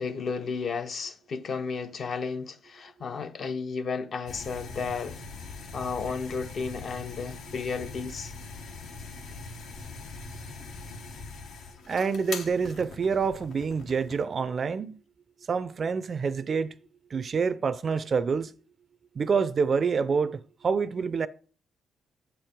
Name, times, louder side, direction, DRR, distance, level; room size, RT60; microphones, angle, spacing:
voice 1, 0.0-5.2 5.7-8.3, left 5 dB, 55° left, 0.7 m, -33 dB
sound 1, 4.3-14.3, left 4 dB, 75° left, 1.1 m, -42 dB
voice 2, 11.9-14.9 15.5-16.7 17.1-18.5 19.1-21.3, right 5 dB, 45° right, 0.4 m, -27 dB
7.3 x 4.6 x 5.1 m
cardioid pair, 90°, 0 cm